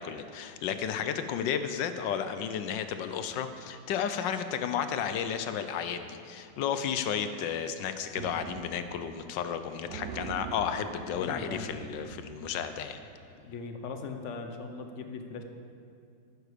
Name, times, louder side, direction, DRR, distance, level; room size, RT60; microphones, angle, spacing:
voice 1, 0.0-13.0, left 8 dB, 75° left, 10 dB, 1.2 m, -33 dB
sound 1, 8.2-9.2 9.4-9.5 9.8-13.2, right 7 dB, 70° right, 0.9 m, -43 dB
voice 2, 11.1-11.7 13.4-15.4, left 4 dB, 55° left, 6 dB, 0.9 m, -39 dB
11.0 x 10.0 x 5.0 m, 2.4 s
omnidirectional pair, 2.2 m